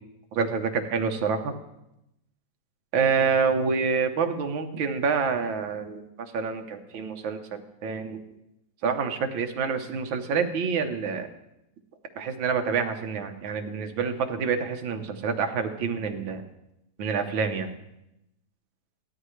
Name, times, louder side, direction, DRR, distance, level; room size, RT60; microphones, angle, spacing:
voice 1, 0.3-1.6 2.9-6.0 6.3-8.2 8.8-11.3 12.2-16.4 17.0-17.7, right 5 dB, 80° right, 5 dB, 1.8 m, -27 dB
17.5 x 12.5 x 3.2 m, 0.87 s
omnidirectional pair, 2.1 m